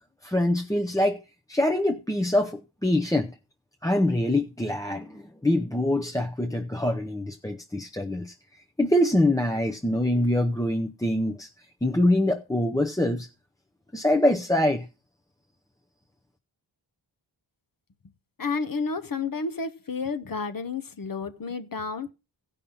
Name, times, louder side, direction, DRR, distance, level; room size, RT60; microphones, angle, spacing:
voice 1, 0.2-1.2 1.5-3.3 3.8-8.3 8.8-11.5 11.8-13.3 13.9-14.9, left 1 dB, 5° left, 0.6 m, -24 dB
voice 2, 18.4-22.1, left 4 dB, 45° left, 0.9 m, -31 dB
15.5 x 5.5 x 5.5 m
wide cardioid pair, 70°, 47 cm